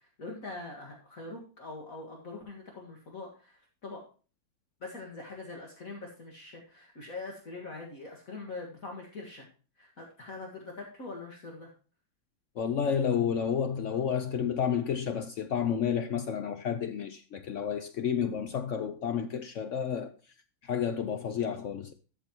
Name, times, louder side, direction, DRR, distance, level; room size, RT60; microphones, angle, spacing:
voice 1, 0.2-4.0 4.8-9.5 9.8-11.7 19.9-20.0, left 3 dB, 50° left, 2.1 m, -43 dB
voice 2, 12.6-20.1 20.6-21.9, left 7 dB, 70° left, 0.7 m, -30 dB
13.0 x 6.8 x 2.9 m
omnidirectional pair, 2.0 m